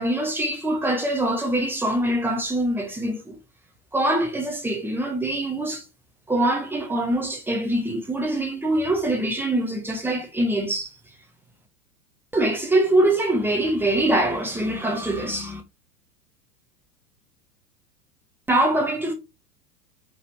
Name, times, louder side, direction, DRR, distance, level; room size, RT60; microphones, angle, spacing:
voice 1, 0.0-3.4 3.9-5.8 6.3-10.9 12.3-15.6 18.5-19.1, right 1 dB, 5° right, 0.5 m, -23 dB
4.8 x 3.4 x 2.7 m
figure-of-eight pair, 95°, 49 cm